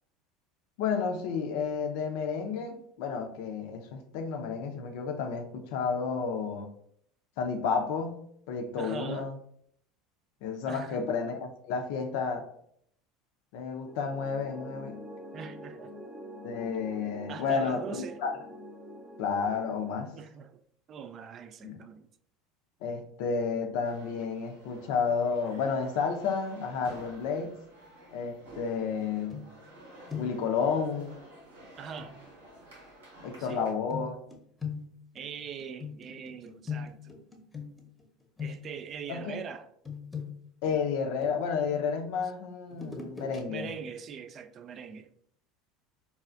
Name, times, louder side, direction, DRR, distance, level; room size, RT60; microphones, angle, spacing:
voice 1, 0.8-6.7 7.4-9.4 10.4-12.4 13.5-15.0 16.4-18.3 19.2-20.1 21.6-21.8 22.8-27.6 28.1-29.4 30.2-31.2 33.2-34.2 39.1-39.4 40.6-43.7, left 5 dB, 65° left, 0.5 m, -31 dB
voice 2, 8.8-9.3 10.7-11.3 15.3-15.9 17.3-18.2 20.1-20.6 20.9-22.1 31.8-32.2 33.4-33.6 35.1-37.2 38.4-39.7 43.5-45.1, right 6 dB, 40° right, 0.3 m, -42 dB
sound 1, 13.9-19.9, equal, 20° right, 0.7 m, -45 dB
sound 2, 23.8-33.7, right 1 dB, 85° right, 0.8 m, -52 dB
sound 3, 29.3-29.8 30.1-30.5 32.0-32.1 33.9-38.0 38.4-38.9 39.8-41.7 42.7-43.4 43.8-43.9, left 6 dB, 15° left, 0.8 m, -41 dB
4.1 x 2.4 x 2.4 m
hypercardioid pair, 80°, 0 cm